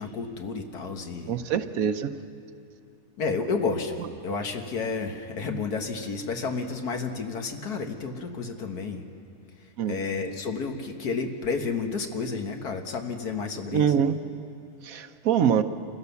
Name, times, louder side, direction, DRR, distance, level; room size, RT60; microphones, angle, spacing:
voice 1, 0.0-1.4 3.2-4.0 4.2-9.1 9.9-13.9, left 4 dB, 85° left, 4 dB, 2.0 m, -31 dB
voice 2, 1.3-2.1 9.8-10.0 13.7-14.2 14.8-15.6, right 8 dB, 70° right, 10 dB, 1.2 m, -24 dB
27.0 x 16.0 x 7.0 m, 2.6 s
omnidirectional pair, 1.6 m